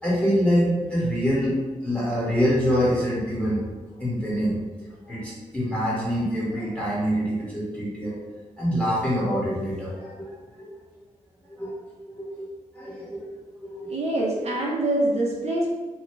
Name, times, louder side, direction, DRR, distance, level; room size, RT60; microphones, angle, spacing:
voice 1, 0.0-3.7 4.0-4.6 5.0-8.2 8.6-10.7 11.5-11.7 12.1-13.3 13.6-13.9, equal, 10° left, -8 dB, 1.4 m, -25 dB
voice 2, 13.9-15.7, right 1 dB, 60° right, -3 dB, 0.6 m, -25 dB
3.0 x 2.4 x 3.0 m, 1.3 s
cardioid pair, 85°, 13 cm